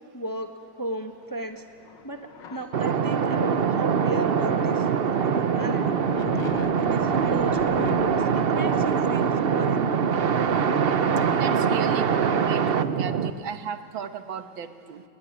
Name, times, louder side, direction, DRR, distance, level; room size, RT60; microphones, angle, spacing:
voice 1, 0.1-1.6 2.0-4.9 5.1-5.9 6.8-10.0 10.4-10.8, right 1 dB, 10° left, 5 dB, 1.1 m, -34 dB
sound 1, 1.2-12.5, left 8 dB, 70° left, 1.7 m, -42 dB
sound 2, 2.7-13.3, right 6 dB, 60° right, 0.6 m, -23 dB
voice 2, 11.3-15.0, right 7 dB, 90° right, 9 dB, 2.0 m, -35 dB
28.0 x 20.5 x 9.9 m, 2.4 s
omnidirectional pair, 2.1 m